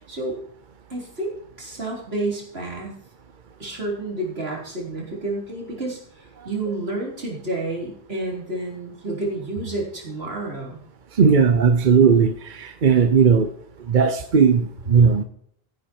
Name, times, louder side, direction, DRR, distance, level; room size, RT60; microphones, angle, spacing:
voice 1, 0.9-2.9 3.6-10.8, right 2 dB, 80° right, -2 dB, 4.1 m, -30 dB
voice 2, 11.2-13.5 13.9-15.2, right 6 dB, 55° right, 9 dB, 0.9 m, -17 dB
14.5 x 10.0 x 4.5 m, 0.65 s
omnidirectional pair, 1.0 m